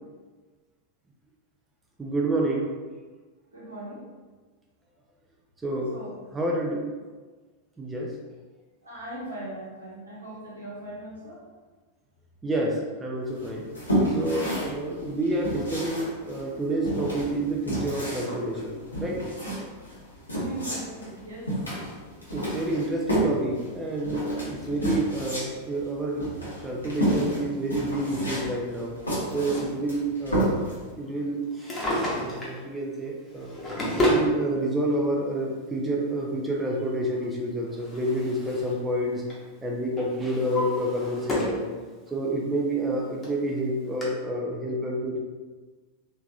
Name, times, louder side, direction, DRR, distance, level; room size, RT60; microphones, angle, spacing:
voice 1, 2.0-2.7 5.6-6.0 6.3-6.9 7.8-8.1 12.4-13.7 14.1-19.3 22.3-28.9 29.3-30.6 31.0-31.7 32.2-33.5 33.8-39.2 39.6-41.7 42.1-45.2, right 1 dB, 10° right, -2 dB, 0.4 m, -28 dB
voice 2, 3.5-4.0 5.9-6.1 8.8-11.4 20.3-21.5, right 1 dB, 75° right, -6 dB, 1.1 m, -39 dB
sound 1, 13.4-30.9, right 1 dB, 80° left, 1.1 m, -30 dB
Drawer open or close, 31.5-32.6 33.3-34.3 35.4-35.5 37.2-38.8 39.1-39.5 40.0-41.6 42.1-42.2 42.9-43.0 43.2-43.3 44.0-44.1, equal, 20° left, 1.0 m, -29 dB
3.4 x 3.2 x 2.3 m, 1.3 s
figure-of-eight pair, 90°, 0 cm